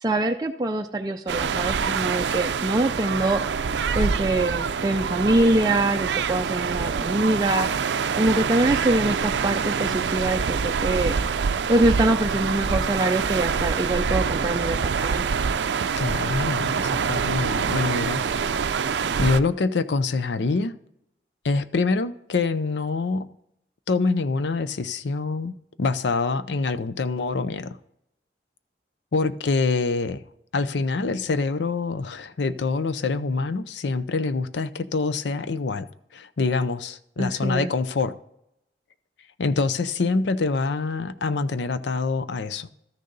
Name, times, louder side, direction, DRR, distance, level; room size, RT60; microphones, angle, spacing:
voice 1, 0.0-3.4 3.9-7.7 8.1-11.1 11.7-15.3 37.2-37.7, right 2 dB, 20° right, 0.4 m, -24 dB
sound 1, 1.3-19.4, right 6 dB, 80° right, 0.4 m, -25 dB
voice 2, 16.0-18.2 18.9-20.8 21.4-23.3 23.9-27.8 29.1-30.2 30.5-35.9 36.1-38.1 39.4-42.7, left 3 dB, 85° left, 0.6 m, -25 dB
13.0 x 6.5 x 4.0 m
head